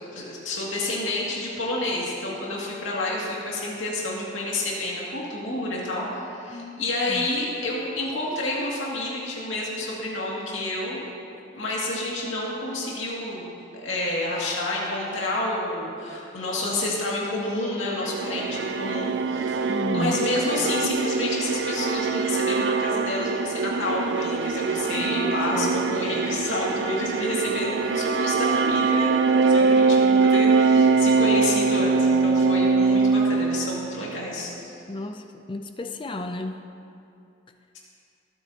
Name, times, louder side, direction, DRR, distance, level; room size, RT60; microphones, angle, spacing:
voice 1, 0.1-11.1 11.5-13.5 13.7-34.7, left 2 dB, 80° left, -4 dB, 2.3 m, -29 dB
voice 2, 6.5-6.8 7.1-7.3 19.7-20.2 25.1-25.7 34.9-36.6, left 2 dB, 25° left, 6 dB, 0.5 m, -33 dB
sound 1, 17.9-34.2, right 4 dB, 60° right, 0.4 m, -23 dB
21.0 x 9.1 x 2.9 m, 2.7 s
head